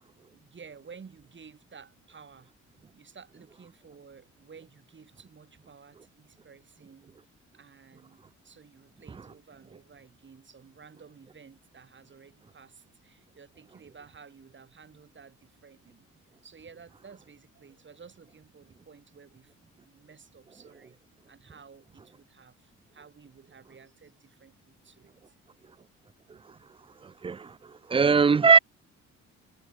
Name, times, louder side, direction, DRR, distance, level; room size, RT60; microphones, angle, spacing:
voice 1, 0.2-2.5 2.9-16.1 16.4-21.0 21.3-25.4, right 6 dB, 40° right, 4.8 m, -53 dB
voice 2, 27.0-28.6, right 5 dB, 20° right, 0.4 m, -21 dB
cardioid pair, 90°, 30 cm